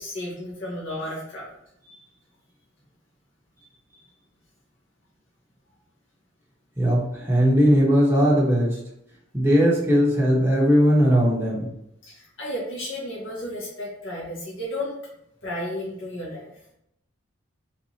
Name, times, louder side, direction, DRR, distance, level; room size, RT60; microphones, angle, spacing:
voice 1, 0.0-1.4 12.0-15.0 15.4-16.5, left 1 dB, 70° left, -6 dB, 1.6 m, -33 dB
voice 2, 6.8-8.8 9.3-11.7, equal, 10° right, -4 dB, 1.0 m, -19 dB
4.2 x 3.9 x 2.9 m, 0.78 s
head